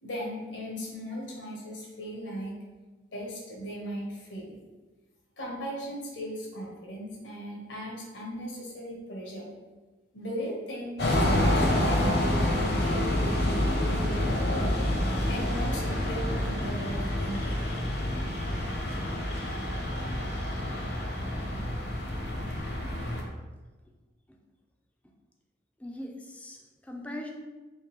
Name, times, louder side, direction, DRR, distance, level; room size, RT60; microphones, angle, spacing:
voice 1, 0.0-2.6 3.1-4.6 5.4-9.5 10.1-12.2 12.7-14.8 15.3-17.6, equal, 85° left, -2 dB, 1.1 m, -38 dB
sound 1, 11.0-23.2, left 1 dB, 60° left, 0.7 m, -28 dB
voice 2, 25.8-27.3, left 1 dB, 5° left, 1 dB, 0.3 m, -40 dB
3.6 x 3.2 x 3.0 m, 1.2 s
head